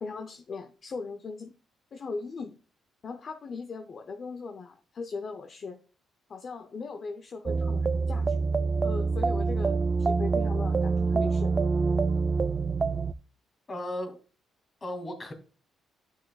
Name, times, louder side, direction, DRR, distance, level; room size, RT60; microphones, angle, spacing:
voice 1, 0.0-1.5 1.9-2.6 3.0-5.8 6.3-8.4 8.8-11.6, left 4 dB, 50° left, 6 dB, 0.6 m, -39 dB
sound 1, 7.5-13.1, right 4 dB, 30° right, 0.3 m, -26 dB
voice 2, 13.7-14.2 14.8-15.3, left 1 dB, 30° left, 5 dB, 2.3 m, -35 dB
11.0 x 6.0 x 2.3 m, 0.35 s
cardioid pair, 90°, 0 cm